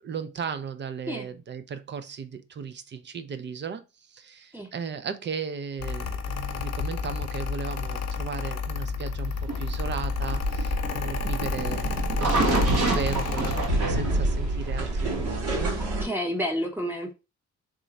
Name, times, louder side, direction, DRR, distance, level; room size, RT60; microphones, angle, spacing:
voice 1, 0.0-15.8, right 6 dB, 40° right, 0.4 m, -36 dB
Mechanical fan, 5.8-13.7, left 6 dB, 55° left, 0.6 m, -31 dB
sound 1, 9.5-15.4, right 2 dB, 55° right, 1.3 m, -29 dB
sound 2, 9.7-16.0, right 1 dB, 75° right, 2.3 m, -29 dB
voice 2, 16.0-17.1, equal, 5° right, 0.8 m, -29 dB
3.7 x 2.1 x 4.0 m
cardioid pair, 90°, 30 cm